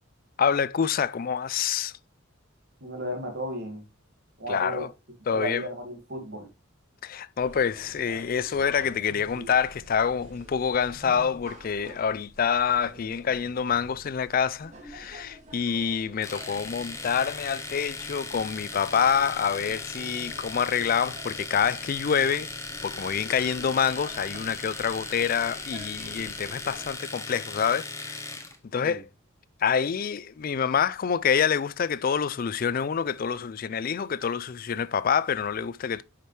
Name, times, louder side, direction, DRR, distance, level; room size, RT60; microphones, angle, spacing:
voice 1, 0.4-1.9 4.5-4.9 5.3-5.6 7.0-22.5 22.8-28.2 28.7-29.1 29.6-36.0, left 7 dB, 40° left, 0.3 m, -27 dB
voice 2, 2.8-3.8 4.4-4.9 5.3-6.5 28.8-29.0, equal, 50° right, 1.9 m, -34 dB
sound 1, 7.4-26.9, right 1 dB, 35° right, 2.0 m, -48 dB
Domestic sounds home sounds, 16.2-28.6, left 3 dB, 15° left, 0.8 m, -38 dB
8.6 x 5.1 x 3.1 m
head